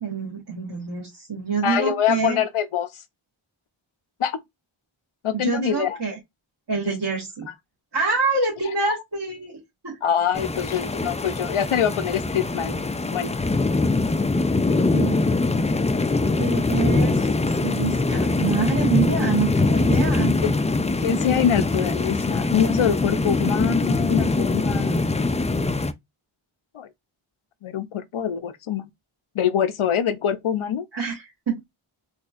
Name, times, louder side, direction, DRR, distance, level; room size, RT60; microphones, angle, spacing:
voice 1, 0.0-2.4 5.3-6.2 6.7-7.5 7.9-10.0 14.9-15.2 16.3-17.3 17.6-20.3 30.9-31.6, right 5 dB, 55° right, 1.6 m, -26 dB
voice 2, 1.6-3.0 4.2-4.4 5.2-6.0 10.0-12.8 13.1-13.3 20.4-20.6 21.0-25.0 26.7-26.9 27.6-28.9 29.3-30.8, left 9 dB, 75° left, 0.6 m, -24 dB
sound 1, 10.3-25.9, left 3 dB, 15° left, 0.3 m, -23 dB
4.2 x 2.7 x 2.4 m
wide cardioid pair, 40°, 50 cm